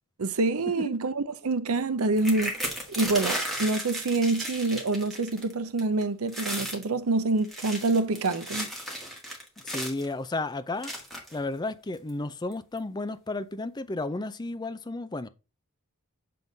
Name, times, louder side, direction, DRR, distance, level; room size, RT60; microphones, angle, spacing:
voice 1, 0.2-8.7, right 3 dB, 75° right, 0.7 m, -27 dB
sound 1, 2.2-5.5 5.8-6.0 6.3-6.8 7.4-10.1 10.8-11.4 12.1-12.2 12.5-12.8, equal, ahead, 1.8 m, -34 dB
voice 2, 9.6-10.9 11.3-15.3, left 2 dB, 20° left, 0.5 m, -33 dB
7.6 x 3.7 x 3.9 m
head